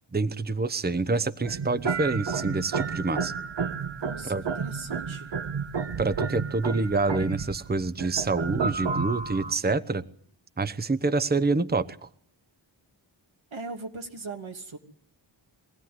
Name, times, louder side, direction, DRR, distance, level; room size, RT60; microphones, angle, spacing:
voice 1, 0.1-3.3 4.2-4.4 6.0-10.0 10.6-11.9, right 3 dB, 20° right, 13 dB, 0.9 m, -27 dB
sound 1, 1.4-9.5, right 5 dB, 65° right, 1.3 m, -31 dB
voice 2, 4.0-5.3 13.5-14.8, right 3 dB, 90° right, 2 dB, 3.0 m, -39 dB
24.0 x 17.0 x 9.5 m, 0.65 s
wide cardioid pair, 65°, 46 cm